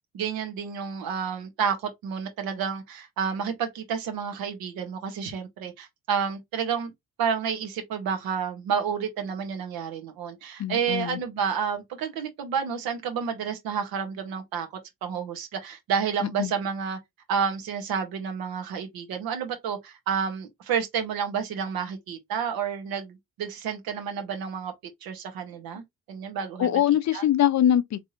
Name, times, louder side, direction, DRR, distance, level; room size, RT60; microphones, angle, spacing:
voice 1, 0.1-6.9 7.2-14.7 15.0-17.0 17.3-24.7 25.0-25.8 26.1-26.8 27.1-27.2, right 7 dB, 75° right, 1.4 m, -30 dB
voice 2, 10.6-11.2 16.4-16.5 26.6-28.1, left 11 dB, 50° left, 0.7 m, -23 dB
3.4 x 3.4 x 2.9 m
hypercardioid pair, 55°, 36 cm